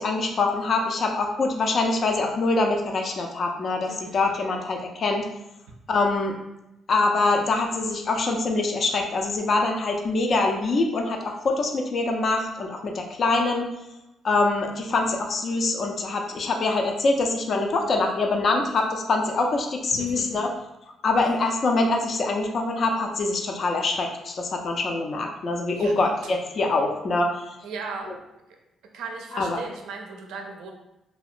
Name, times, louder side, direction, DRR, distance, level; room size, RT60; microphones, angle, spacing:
voice 1, 0.0-5.3 5.9-6.3 6.9-13.6 14.2-20.5 21.0-27.6 29.3-29.6, left 3 dB, 50° left, 2 dB, 0.4 m, -24 dB
voice 2, 3.8-4.1 19.9-20.4 25.8-26.3 27.6-28.1 28.9-30.7, right 4 dB, 90° right, 2 dB, 0.4 m, -37 dB
2.7 x 2.1 x 2.4 m, 0.92 s
cardioid pair, 90°, 0 cm